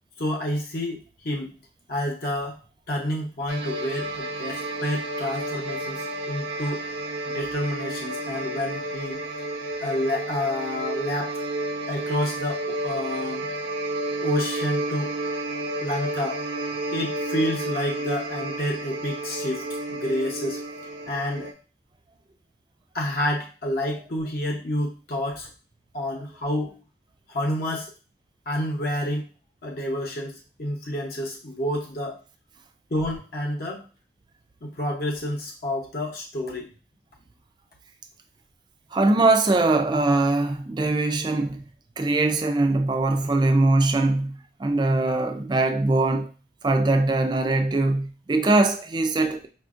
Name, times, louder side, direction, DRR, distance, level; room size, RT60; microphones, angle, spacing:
voice 1, 0.2-1.5 1.9-2.6 2.9-6.8 7.2-9.2 9.8-11.4 11.9-13.5 14.2-15.2 15.8-16.4 16.9-20.6 21.1-21.5 22.9-25.5 25.9-26.8 27.3-27.9 28.5-29.3 29.6-32.2 32.9-33.9 34.6-36.7, left 1 dB, 55° left, 0.7 m, -29 dB
sound 1, 3.5-21.5, right 1 dB, 85° right, 0.6 m, -31 dB
voice 2, 38.9-41.6 42.0-46.3 46.6-49.5, right 2 dB, 25° right, 0.3 m, -22 dB
4.9 x 2.5 x 2.4 m
head